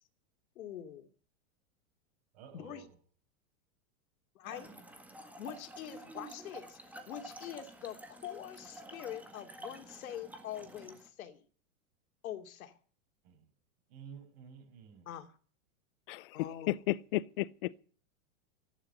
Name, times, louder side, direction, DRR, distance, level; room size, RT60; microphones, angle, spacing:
voice 1, 0.6-1.1 2.5-2.8 4.3-4.7 5.4-11.4 12.2-12.7 15.1-15.3 16.3-16.7, left 10 dB, 85° left, 2.9 m, -44 dB
voice 2, 2.3-3.0 13.2-13.5 13.9-15.1, right 7 dB, 45° right, 7.0 m, -52 dB
Trickle dribble / Fill (with liquid), 4.4-11.1, right 1 dB, 5° right, 1.7 m, -50 dB
voice 3, 16.1-17.8, left 16 dB, 45° left, 0.6 m, -34 dB
16.5 x 11.5 x 6.7 m
supercardioid pair, 170°, 41 cm